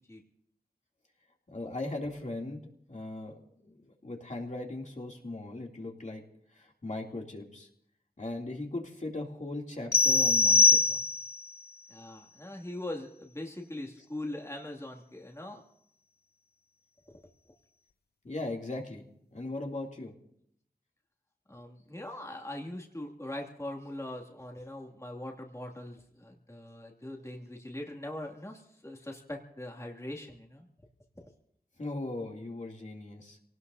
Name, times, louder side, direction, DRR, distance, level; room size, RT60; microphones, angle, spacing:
voice 1, 1.5-6.2 6.5-7.7 8.2-11.0 18.2-20.1 31.8-33.4, left 2 dB, 50° left, 0 dB, 2.7 m, -39 dB
sound 1, 9.9-11.4, left 4 dB, 85° left, 0.7 m, -22 dB
voice 2, 11.9-15.6 21.5-30.7, left 1 dB, 20° left, 1 dB, 2.4 m, -41 dB
26.5 x 18.5 x 2.7 m, 0.71 s
wide cardioid pair, 45°, 16 cm